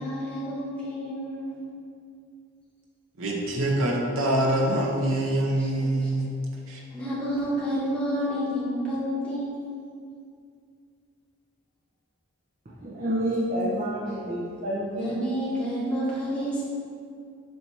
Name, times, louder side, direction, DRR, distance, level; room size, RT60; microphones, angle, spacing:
voice 1, 0.0-1.6 5.6-6.1 6.9-9.6 14.9-16.6, equal, 5° left, -10 dB, 1.6 m, -30 dB
voice 2, 3.2-6.3 6.7-6.8, right 1 dB, 70° right, -2 dB, 1.1 m, -25 dB
voice 3, 12.8-15.1, equal, 40° right, -7 dB, 0.9 m, -28 dB
7.8 x 3.0 x 5.6 m, 2.3 s
head